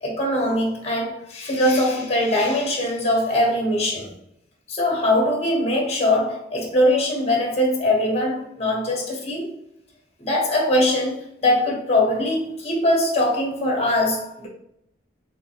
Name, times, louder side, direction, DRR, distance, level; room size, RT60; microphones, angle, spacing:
voice 1, 0.0-4.1 4.7-9.5 10.2-14.5, left 1 dB, 35° left, 0 dB, 1.2 m, -22 dB
3.9 x 3.7 x 2.9 m, 0.74 s
head